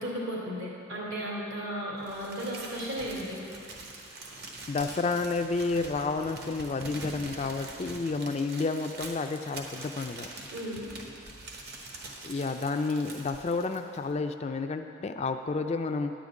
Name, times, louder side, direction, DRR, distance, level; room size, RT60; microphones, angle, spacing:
voice 1, 0.0-3.4 10.5-10.9, equal, 70° right, -5 dB, 2.6 m, -35 dB
Crumpling crinkling, 2.0-14.1, right 2 dB, 50° right, 1.1 m, -44 dB
voice 2, 4.7-10.3 12.2-16.1, left 3 dB, 30° left, 7 dB, 0.3 m, -30 dB
10.0 x 5.1 x 8.2 m, 2.7 s
head